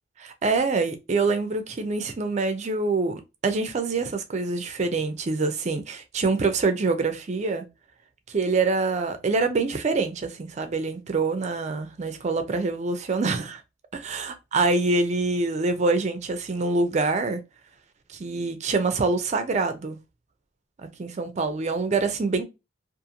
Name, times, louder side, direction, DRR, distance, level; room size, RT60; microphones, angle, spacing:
voice 1, 0.2-7.6 8.3-13.6 13.9-17.4 18.1-20.0 20.8-22.4, right 3 dB, 35° right, 0.4 m, -25 dB
2.5 x 2.5 x 2.7 m
head